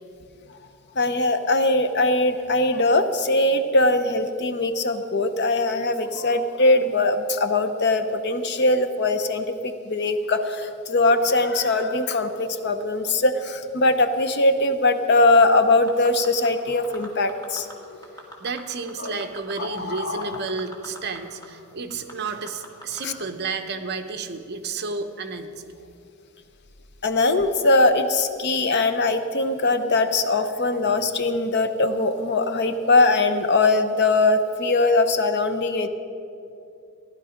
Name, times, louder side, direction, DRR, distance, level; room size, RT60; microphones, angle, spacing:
voice 1, 1.0-18.0 19.0-19.3 19.6-20.4 23.0-23.1 27.0-35.9, left 2 dB, 50° left, 9 dB, 0.7 m, -21 dB
sound 1, 15.7-16.5 16.8-17.7 18.0-18.6 18.9-21.2 21.4-21.5 21.9-23.0 23.5-23.6, equal, 15° left, 1.8 m, -41 dB
voice 2, 18.4-25.5, right 4 dB, 50° right, 7 dB, 0.8 m, -31 dB
15.5 x 11.0 x 5.1 m, 2.6 s
head